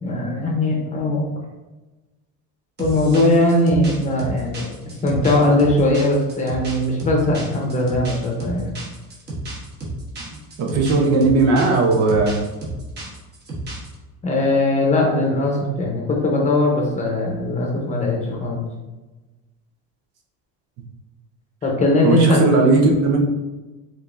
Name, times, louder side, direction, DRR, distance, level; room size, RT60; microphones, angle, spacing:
voice 1, 0.0-1.2 2.8-4.7 5.0-8.7 14.2-18.6 21.6-22.4, left 1 dB, 20° left, -1 dB, 0.9 m, -19 dB
sound 1, 2.8-13.9, right 1 dB, 30° right, 1.2 m, -32 dB
voice 2, 10.6-12.4 22.0-23.2, right 3 dB, 50° right, 2 dB, 0.7 m, -17 dB
5.1 x 3.8 x 2.6 m, 1.1 s
cardioid pair, 165°, 33 cm